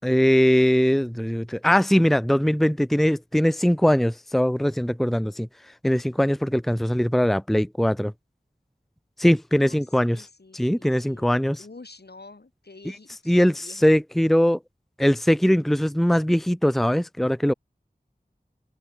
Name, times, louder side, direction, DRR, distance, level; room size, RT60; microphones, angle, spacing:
voice 1, 0.0-5.5 5.8-8.1 9.2-10.2 10.5-11.6 13.3-14.6 15.0-17.5, equal, ahead, 0.7 m, -21 dB
voice 2, 9.5-11.3 11.6-13.9, left 3 dB, 80° left, 3.1 m, -48 dB
wide cardioid pair, 45°, 17 cm